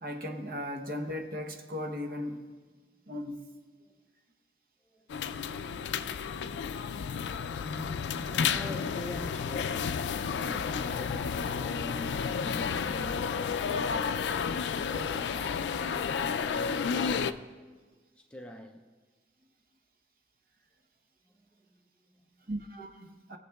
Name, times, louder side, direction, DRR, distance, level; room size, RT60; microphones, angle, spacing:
voice 1, 0.0-2.5 3.1-3.5 22.5-23.4, left 1 dB, 55° right, 0.8 m, -37 dB
voice 2, 2.7-3.1 3.8-4.1 4.8-5.6 7.6-14.3 14.9-17.6 18.1-18.9 21.2-22.5 23.1-23.2, equal, 5° left, 0.4 m, -46 dB
sound 1, 5.1-17.3, left 6 dB, 80° left, 0.3 m, -31 dB
20.0 x 7.2 x 2.3 m
head